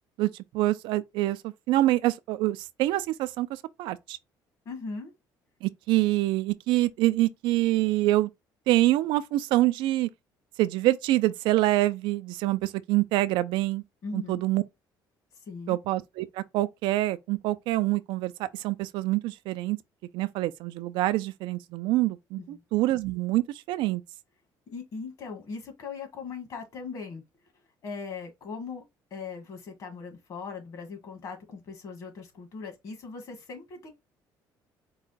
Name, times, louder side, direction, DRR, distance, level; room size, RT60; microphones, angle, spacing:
voice 1, 0.2-3.5 3.8-4.2 5.6-8.3 8.7-10.1 10.6-13.8 14.1-14.6 15.7-19.8 20.1-24.0, right 17 dB, 85° right, 0.4 m, -26 dB
voice 2, 4.6-5.1 14.0-14.4 15.5-15.8 22.4-22.6 24.7-27.2 27.8-28.8 29.1-33.9, left 4 dB, 45° left, 1.6 m, -39 dB
4.7 x 2.2 x 4.0 m
cardioid pair, 145°, 8 cm